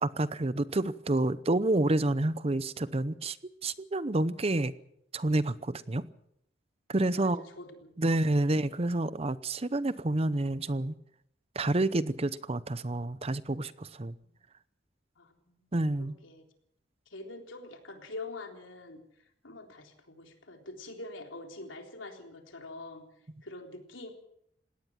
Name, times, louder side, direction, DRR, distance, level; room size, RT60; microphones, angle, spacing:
voice 1, 0.0-3.4 3.6-4.7 5.1-6.0 6.9-7.4 8.0-10.9 11.5-14.2 15.7-16.1, right 2 dB, 30° right, 16 dB, 0.7 m, -29 dB
voice 2, 6.9-7.9 15.2-15.7 16.0-16.4 17.1-19.0 19.4-23.0 23.4-24.1, left 2 dB, 85° left, 3 dB, 3.8 m, -45 dB
20.0 x 17.5 x 7.4 m, 0.74 s
head